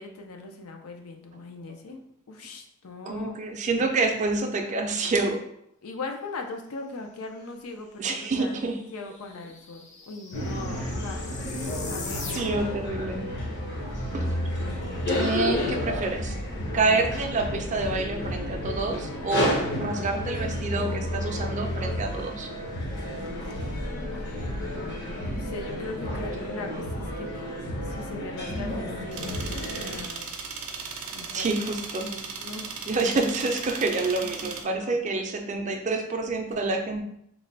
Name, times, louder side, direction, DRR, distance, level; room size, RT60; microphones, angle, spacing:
voice 1, 0.0-2.0 2.3-3.4 5.8-11.6 11.9-12.6 23.7-23.8 24.1-24.5 25.2-27.5 27.8-30.4 31.1-31.5 32.0-32.7 34.2-35.0, left 3 dB, 85° left, 4 dB, 0.5 m, -40 dB
voice 2, 3.1-5.4 8.0-8.8 10.7-10.9 12.3-13.2 14.1-14.3 15.2-16.3 16.7-22.5 31.3-32.1 32.9-37.0, right 3 dB, 35° right, 4 dB, 0.4 m, -27 dB
sound 1, 8.4-8.5 8.6-12.9, left 4 dB, 35° left, 0.4 m, -41 dB
sound 2, 10.3-30.0, left 1 dB, 55° left, 0.8 m, -31 dB
sound 3, 29.1-34.6, right 5 dB, 90° right, 0.5 m, -37 dB
3.1 x 2.2 x 3.8 m, 0.73 s
head